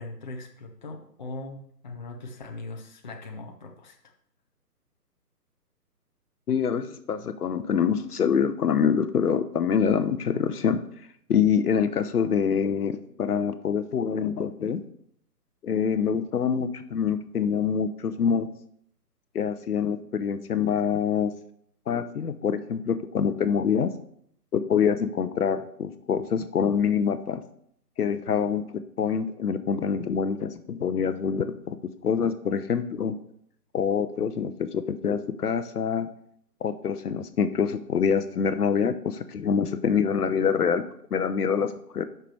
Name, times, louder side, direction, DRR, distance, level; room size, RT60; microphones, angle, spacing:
voice 1, 0.0-4.0, left 2 dB, 30° left, 2 dB, 0.7 m, -40 dB
voice 2, 6.5-10.8 11.3-14.8 15.6-18.5 19.3-21.3 21.9-23.9 24.5-27.4 28.0-31.8 32.0-33.1 33.7-36.1 36.6-40.9 41.1-42.0, left 7 dB, 65° left, 11 dB, 0.8 m, -25 dB
6.0 x 5.9 x 6.2 m, 0.67 s
hypercardioid pair, 160°, 49 cm